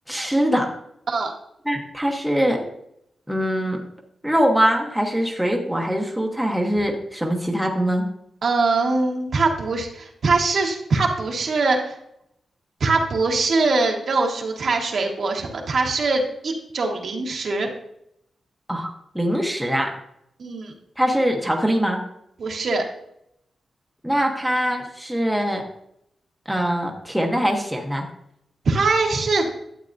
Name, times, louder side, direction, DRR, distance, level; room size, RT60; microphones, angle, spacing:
voice 1, 0.1-0.7 1.6-2.7 3.3-3.8 4.2-8.0 18.7-19.9 21.0-22.0 24.0-25.6 26.5-28.1, equal, ahead, 0 dB, 1.0 m, -22 dB
voice 2, 8.4-12.0 12.8-17.7 20.4-20.7 22.4-22.8 28.6-29.5, right 3 dB, 60° right, 1 dB, 1.5 m, -22 dB
12.0 x 8.1 x 2.7 m, 0.77 s
wide cardioid pair, 140°, 0 cm